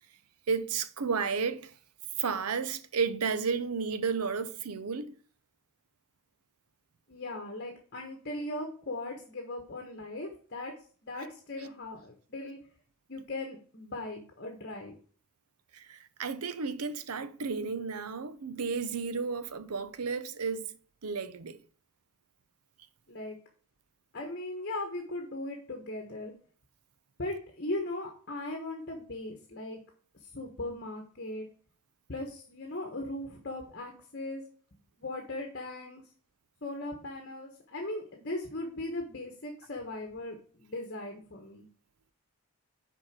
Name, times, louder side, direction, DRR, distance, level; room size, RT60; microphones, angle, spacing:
voice 1, 0.5-1.7 2.2-5.1 15.7-20.8 21.0-21.6, right 5 dB, 85° right, 0.7 m, -32 dB
voice 2, 7.1-10.7 11.0-12.6 13.1-14.9 23.1-23.4 24.1-26.3 27.2-29.8 30.3-31.5 32.1-34.4 35.0-36.0 36.6-41.7, left 2 dB, 50° left, 1.3 m, -38 dB
6.5 x 4.6 x 6.0 m
head